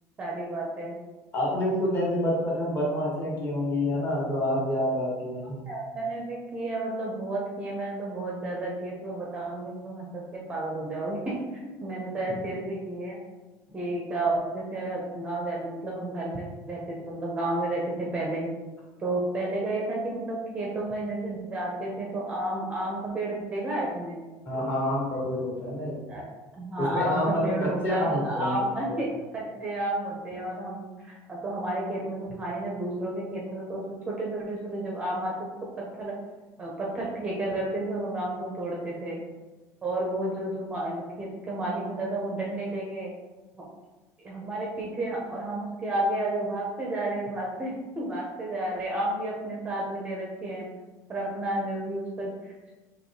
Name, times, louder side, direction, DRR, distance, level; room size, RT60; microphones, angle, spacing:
voice 1, 0.2-1.0 5.6-13.2 13.7-18.5 19.0-24.2 26.1-26.2 26.5-35.3 36.0-36.1 36.6-39.2 39.8-43.1 43.5-43.6 44.2-50.7 51.1-52.7, right 1 dB, 15° right, -3 dB, 0.6 m, -31 dB
voice 2, 1.3-5.7 12.2-12.4 24.4-26.0 26.8-28.5, left 1 dB, 30° left, -5 dB, 1.4 m, -28 dB
4.4 x 3.0 x 2.8 m, 1.2 s
cardioid pair, 170°, 7 cm